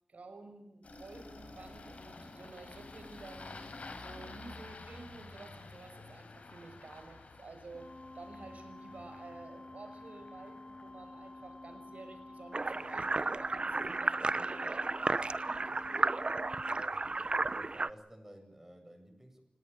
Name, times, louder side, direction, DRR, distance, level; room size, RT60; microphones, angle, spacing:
voice 1, 0.1-3.6 4.0-15.7, right 3 dB, 80° right, 8 dB, 6.4 m, -52 dB
Engine starting, 0.8-13.3, left 3 dB, 70° left, 4.8 m, -51 dB
sound 1, 7.7-16.8, left 2 dB, 40° left, 3.4 m, -50 dB
sound 2, 12.5-17.9, right 3 dB, 45° right, 1.0 m, -33 dB
voice 2, 16.7-19.4, right 1 dB, 15° right, 5 dB, 7.8 m, -54 dB
29.0 x 18.0 x 8.8 m, 0.72 s
wide cardioid pair, 80°, 2 cm